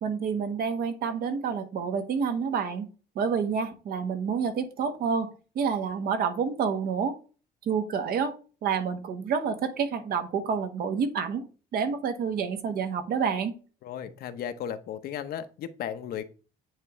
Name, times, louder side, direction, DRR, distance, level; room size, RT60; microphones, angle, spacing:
voice 1, 0.0-2.9 3.1-5.3 5.5-7.2 7.7-8.3 8.6-11.4 11.7-13.5, right 6 dB, 65° right, 8 dB, 1.3 m, -28 dB
voice 2, 13.8-16.2, left 9 dB, 65° left, 10 dB, 0.9 m, -35 dB
9.1 x 3.7 x 3.1 m, 0.35 s
cardioid pair, 110°, 17 cm